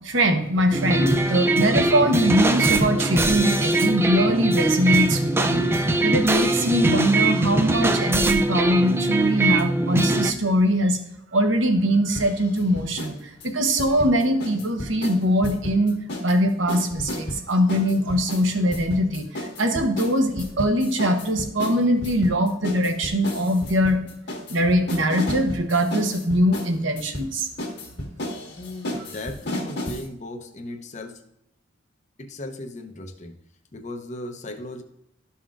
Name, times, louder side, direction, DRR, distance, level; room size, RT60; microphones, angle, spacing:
voice 1, 0.0-5.6 6.0-11.0 11.3-24.0 24.5-27.5, equal, 75° right, 5 dB, 1.0 m, -22 dB
sound 1, 0.7-10.3, right 2 dB, 10° right, 0.4 m, -22 dB
sound 2, 12.2-13.2 13.4-16.4 16.7-30.1, left 1 dB, 60° left, 1.6 m, -33 dB
voice 2, 28.6-31.2 32.2-33.3 33.7-34.8, left 1 dB, 40° left, 5 dB, 0.8 m, -36 dB
12.5 x 5.6 x 2.5 m, 0.79 s
head